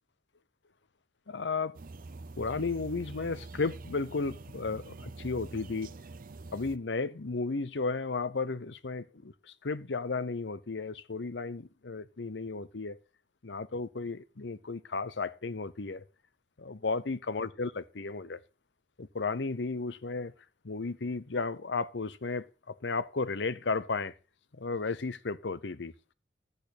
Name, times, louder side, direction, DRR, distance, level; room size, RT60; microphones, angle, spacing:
voice 1, 1.3-1.8 2.4-5.9 6.5-13.0 13.4-16.0 16.6-18.4 19.0-20.3 20.6-24.1 24.5-25.9, left 4 dB, 85° left, 0.8 m, -34 dB
sound 1, 1.7-6.8, right 3 dB, 55° right, 0.5 m, -45 dB
10.5 x 8.6 x 4.2 m
head